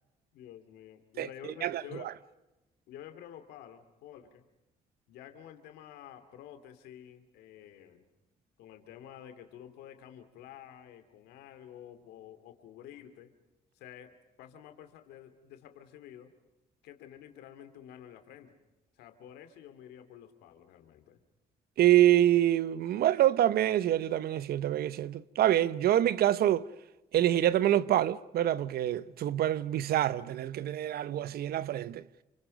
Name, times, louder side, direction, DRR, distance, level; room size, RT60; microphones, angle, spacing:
voice 1, 0.3-2.1 2.9-4.5 5.1-8.0 8.6-13.3 13.7-16.3 16.8-18.6 19.0-21.2, left 10 dB, 90° left, 2.5 m, -50 dB
voice 2, 1.2-2.1 21.8-26.7 27.1-32.0, right 12 dB, 75° right, 0.9 m, -26 dB
28.5 x 26.5 x 5.3 m
supercardioid pair, 65°, 16 cm